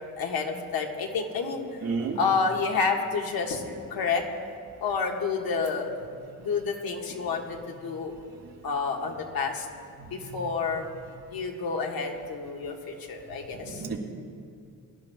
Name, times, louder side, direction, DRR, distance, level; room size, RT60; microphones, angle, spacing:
voice 1, 0.2-1.6 2.1-3.6 3.9-4.2 4.8-5.9 6.4-7.6 7.8-8.1 8.6-9.7 10.1-10.9 11.3-13.8, left 5 dB, 75° left, 1 dB, 1.6 m, -29 dB
voice 2, 1.8-2.2 10.0-10.1 13.6-14.0, right 5 dB, 75° right, 0 dB, 2.5 m, -31 dB
23.0 x 11.5 x 2.3 m, 2.3 s
cardioid pair, 80°, 36 cm